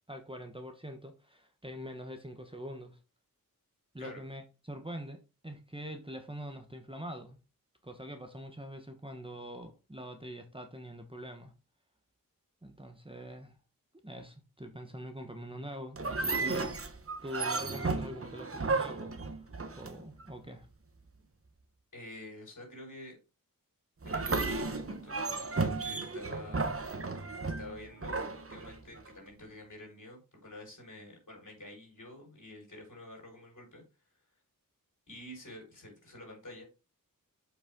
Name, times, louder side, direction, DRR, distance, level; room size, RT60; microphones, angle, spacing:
voice 1, 0.1-3.0 3.9-7.4 7.8-11.5 12.6-13.6 14.0-16.8 17.2-19.5 19.8-20.7, equal, 15° right, 1.2 m, -44 dB
sound 1, 16.0-20.3 24.0-29.1, right 3 dB, 40° right, 1.0 m, -34 dB
voice 2, 21.9-23.2 24.0-26.8 27.4-28.2 28.5-33.8 34.1-34.2 35.1-36.6, left 1 dB, 60° left, 5.0 m, -49 dB
7.3 x 5.6 x 3.7 m
wide cardioid pair, 80°, 35 cm